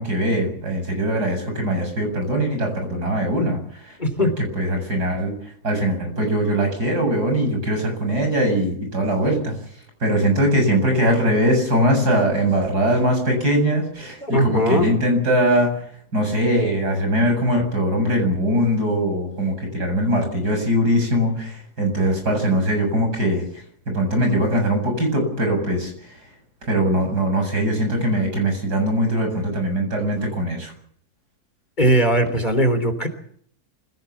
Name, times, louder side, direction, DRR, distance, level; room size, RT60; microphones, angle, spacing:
voice 1, 0.0-4.3 4.5-5.3 5.6-9.6 10.0-15.7 16.1-23.4 23.9-26.2 26.7-30.7, equal, 85° right, 3 dB, 8.2 m, -21 dB
voice 2, 4.0-4.4 14.2-14.9 31.8-33.1, equal, 30° left, 7 dB, 3.7 m, -19 dB
26.0 x 17.5 x 7.2 m, 0.63 s
omnidirectional pair, 1.7 m